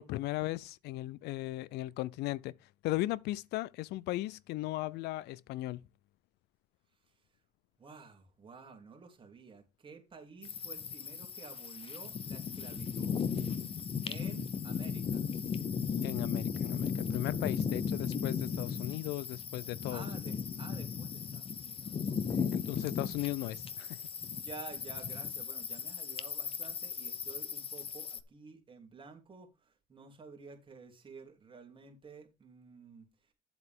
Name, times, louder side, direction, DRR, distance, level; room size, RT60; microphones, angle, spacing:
voice 1, 0.0-2.5 2.8-5.8 16.0-20.0 22.5-24.0, left 17 dB, 80° left, 0.4 m, -37 dB
voice 2, 7.8-13.2 14.0-15.2 19.9-22.5 24.3-33.3, right 4 dB, 30° right, 3.2 m, -51 dB
sound 1, 10.4-28.2, left 6 dB, 35° left, 0.8 m, -36 dB
9.6 x 7.8 x 3.6 m
cardioid pair, 110°, 17 cm